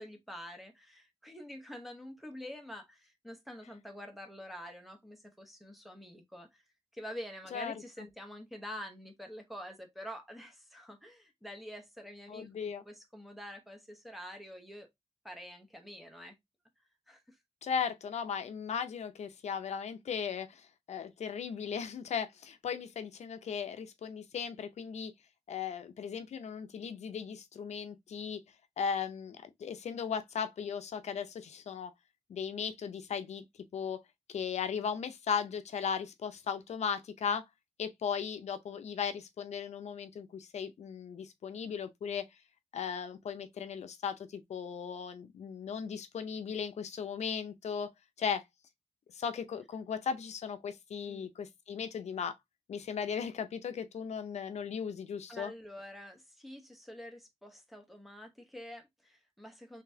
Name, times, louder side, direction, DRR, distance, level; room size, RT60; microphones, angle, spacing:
voice 1, 0.0-6.6 6.9-14.9 15.2-16.3 17.1-17.4 51.1-51.3 55.3-59.8, equal, ahead, 0.8 m, -47 dB
voice 2, 12.3-12.8 17.6-25.1 25.5-28.4 28.8-31.9 32.3-33.4 33.7-34.0 34.3-37.4 37.8-42.2 42.7-47.9 48.2-48.4 49.1-52.3 52.7-55.5, left 7 dB, 85° left, 0.5 m, -37 dB
3.9 x 3.2 x 2.6 m
wide cardioid pair, 165°, 11 cm